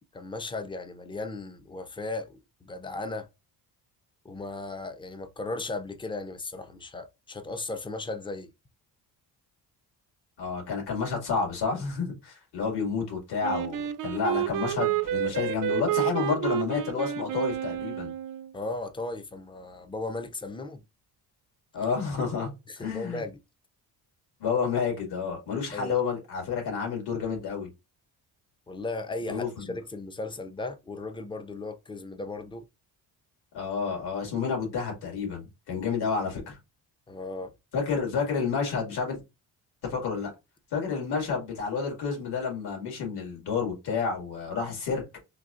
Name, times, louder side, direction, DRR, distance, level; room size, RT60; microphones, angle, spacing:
voice 1, 0.1-3.3 4.2-8.5 18.5-20.8 22.7-23.4 25.7-25.9 28.7-32.6 37.1-37.5, left 2 dB, 15° left, 0.4 m, -36 dB
voice 2, 10.4-18.1 21.7-22.5 22.8-23.2 24.4-27.7 29.3-29.7 33.5-36.6 37.7-39.2 39.9-40.3 40.7-45.0, left 5 dB, 75° left, 2.2 m, -30 dB
Wind instrument woodwind instrument, 13.4-18.5, right 12 dB, 55° right, 0.4 m, -30 dB
3.9 x 2.7 x 2.5 m
cardioid pair, 130°, 39 cm